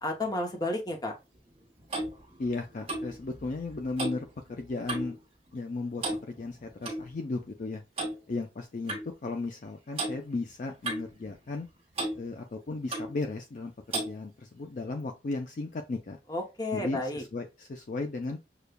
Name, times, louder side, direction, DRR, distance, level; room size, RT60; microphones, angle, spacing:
voice 1, 0.0-1.1 16.3-17.2, left 2 dB, 20° left, 0.8 m, -32 dB
Clock, 1.4-5.2 5.5-5.7 6.0-7.0 8.0-8.2 8.9-9.1 10.0-10.2 10.8-11.7 12.0-12.2 12.9-13.1 13.9-14.2, right 2 dB, 35° right, 1.3 m, -35 dB
voice 2, 2.4-5.2 5.5-7.8 8.3-11.7 12.2-16.2 16.7-18.4, left 3 dB, 45° left, 0.4 m, -35 dB
6.6 x 2.3 x 2.2 m
head